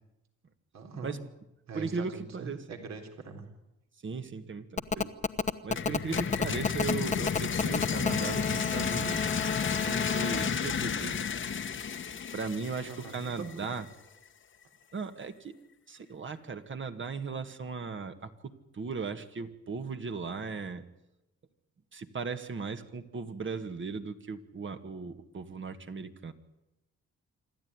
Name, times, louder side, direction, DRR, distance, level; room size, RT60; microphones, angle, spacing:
voice 1, 0.7-1.2 1.7-3.5 12.9-13.5, right 4 dB, 60° right, 4 dB, 3.8 m, -42 dB
voice 2, 1.7-2.7 4.0-5.1 5.6-9.5 9.9-11.2 12.3-13.9 14.9-15.5 15.9-20.9 21.9-26.3, right 5 dB, 40° right, 8 dB, 2.0 m, -37 dB
Telephone, 4.8-10.5, left 4 dB, 25° left, 1.1 m, -31 dB
sound 1, 5.7-13.5, left 6 dB, 40° left, 1.3 m, -32 dB
26.5 x 12.5 x 9.8 m, 0.92 s
cardioid pair, 90°, 30 cm